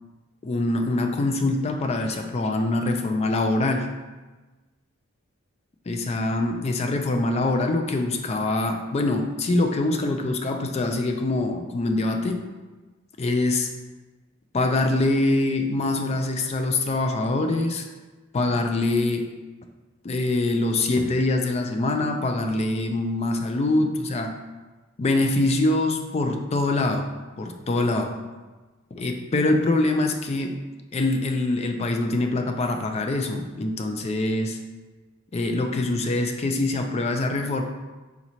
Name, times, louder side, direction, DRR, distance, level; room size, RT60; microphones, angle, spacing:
voice 1, 0.4-3.9 5.9-12.5 13.2-13.7 14.5-17.9 18.3-19.3 20.0-24.4 25.0-27.1 27.4-28.2 28.9-30.6 30.9-34.6 35.3-37.6, left 2 dB, 30° left, 4 dB, 0.3 m, -24 dB
4.1 x 4.1 x 3.0 m, 1.2 s
head